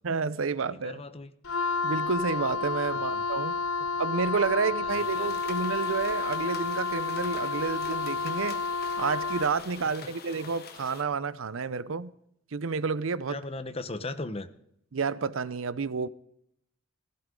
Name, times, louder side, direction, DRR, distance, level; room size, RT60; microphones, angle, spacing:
voice 1, 0.0-1.0 1.8-3.6 4.0-8.6 9.0-12.1 12.5-13.4 14.9-16.1, right 5 dB, 75° right, 0.6 m, -30 dB
voice 2, 0.7-1.3 2.9-3.2 4.8-5.4 13.3-14.5, left 2 dB, 30° left, 0.8 m, -38 dB
Wind instrument woodwind instrument, 1.4-9.6, left 4 dB, 85° left, 0.8 m, -30 dB
sound 1, 4.9-11.0, left 5 dB, 50° left, 1.4 m, -45 dB
16.5 x 15.5 x 3.7 m
head